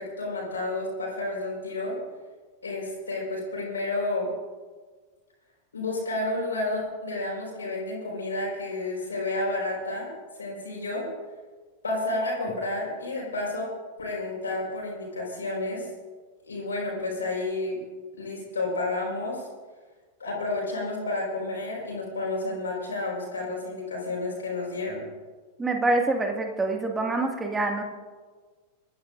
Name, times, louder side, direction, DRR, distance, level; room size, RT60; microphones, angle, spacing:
voice 1, 0.0-2.0 2.6-4.3 5.7-10.1 10.3-11.1 11.8-13.7 14.0-15.9 16.4-17.8 18.1-19.5 20.2-25.0, left 2 dB, 70° left, -4 dB, 4.6 m, -31 dB
voice 2, 25.6-27.8, right 2 dB, 15° right, 3 dB, 1.9 m, -26 dB
25.5 x 13.5 x 2.5 m, 1.4 s
figure-of-eight pair, 90°, 0 cm